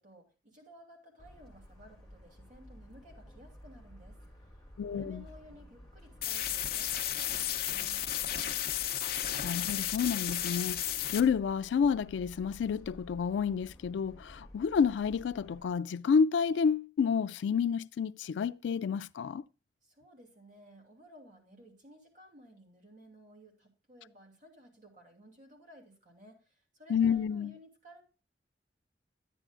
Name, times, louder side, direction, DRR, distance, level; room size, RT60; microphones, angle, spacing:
voice 1, 0.0-4.6 4.9-8.5 19.8-28.0, equal, 45° right, 2.5 m, -56 dB
Motor vehicle (road) / Siren, 1.2-15.7, equal, 5° left, 2.3 m, -53 dB
voice 2, 4.8-5.2 9.0-9.1 9.4-19.4 26.9-27.5, left 6 dB, 85° left, 0.3 m, -30 dB
sound 1, 6.2-11.2, left 11 dB, 55° left, 0.7 m, -33 dB
10.0 x 9.9 x 2.4 m
head